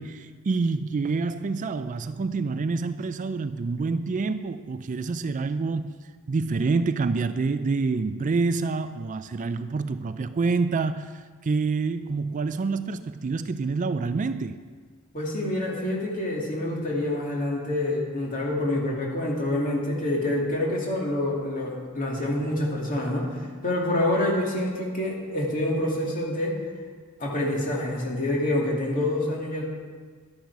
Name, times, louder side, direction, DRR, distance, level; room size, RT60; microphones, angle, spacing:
voice 1, 0.0-5.9 6.3-14.6, right 4 dB, 35° right, 0.4 m, -27 dB
voice 2, 15.1-26.6 27.2-29.7, left 1 dB, 40° left, 2.5 m, -27 dB
12.0 x 10.5 x 4.7 m
head